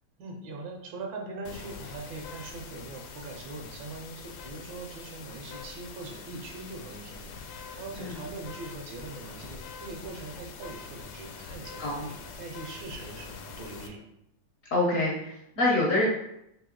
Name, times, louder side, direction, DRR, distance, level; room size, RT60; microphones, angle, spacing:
voice 1, 0.2-14.0, right 3 dB, 75° right, 1 dB, 1.3 m, -41 dB
sound 1, 1.4-13.9, left 5 dB, 80° left, 1.3 m, -44 dB
voice 2, 14.7-16.1, left 2 dB, 60° left, -4 dB, 0.9 m, -26 dB
3.4 x 2.7 x 3.7 m, 0.80 s
omnidirectional pair, 2.1 m